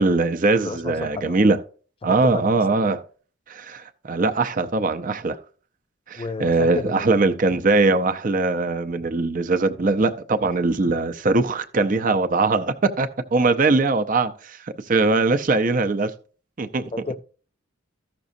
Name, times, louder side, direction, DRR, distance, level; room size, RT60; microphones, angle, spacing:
voice 1, 0.0-1.6 2.0-3.0 3.5-5.4 6.1-16.1 16.6-16.9, right 3 dB, 45° right, 0.6 m, -21 dB
voice 2, 0.6-1.4 2.0-2.8 6.2-7.1 13.4-13.5 16.9-17.2, left 3 dB, 30° left, 0.5 m, -32 dB
14.5 x 6.0 x 2.6 m
head